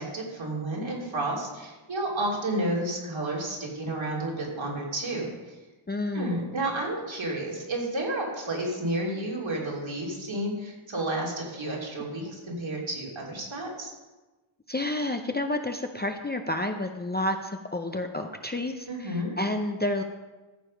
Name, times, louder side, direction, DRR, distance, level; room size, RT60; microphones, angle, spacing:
voice 1, 0.0-5.5 6.1-13.9 18.9-19.4, right 1 dB, 65° right, -2 dB, 3.0 m, -31 dB
voice 2, 5.9-6.4 14.7-20.0, left 1 dB, 20° left, 5 dB, 0.6 m, -30 dB
14.5 x 6.9 x 5.1 m, 1.2 s
wide cardioid pair, 100°, 49 cm